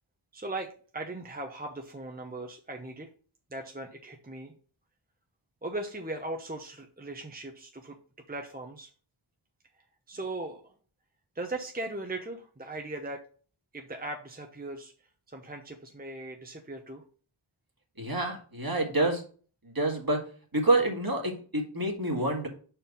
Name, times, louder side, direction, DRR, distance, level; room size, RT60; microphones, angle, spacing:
voice 1, 0.3-3.1 3.5-4.5 5.6-8.0 8.3-8.9 10.1-10.7 11.3-13.2 13.7-14.9 15.3-17.0 22.2-22.3, right 2 dB, 20° right, 3 dB, 0.8 m, -38 dB
voice 2, 18.0-19.2 19.6-20.2 20.5-22.5, right 2 dB, 45° right, 1 dB, 2.0 m, -27 dB
5.5 x 4.5 x 5.4 m, 0.41 s
wide cardioid pair, 50°, 49 cm